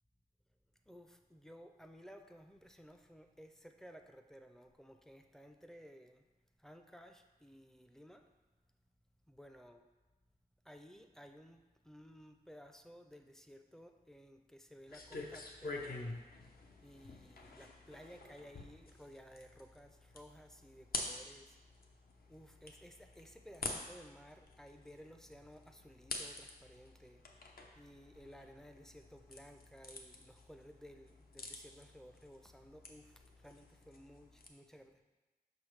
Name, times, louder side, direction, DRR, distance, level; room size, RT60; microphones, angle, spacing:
voice 1, 0.9-6.3 6.6-8.3 9.3-9.8 10.6-16.3 16.8-21.6 22.3-35.0, equal, 5° left, 5 dB, 0.4 m, -57 dB
sound 1, 14.9-34.5, left 2 dB, 65° left, 0.7 m, -48 dB
6.3 x 5.6 x 3.2 m, 1.2 s
wide cardioid pair, 115°, 16 cm